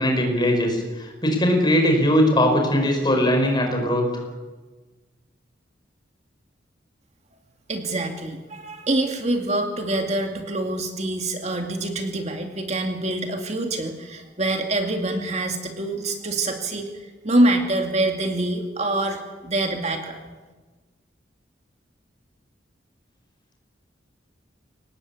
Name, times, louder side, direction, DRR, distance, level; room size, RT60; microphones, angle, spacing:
voice 1, 0.0-4.0, equal, 25° left, 3 dB, 5.1 m, -20 dB
voice 2, 7.7-20.2, right 1 dB, 40° right, 4 dB, 2.3 m, -25 dB
24.5 x 19.0 x 8.5 m, 1.3 s
head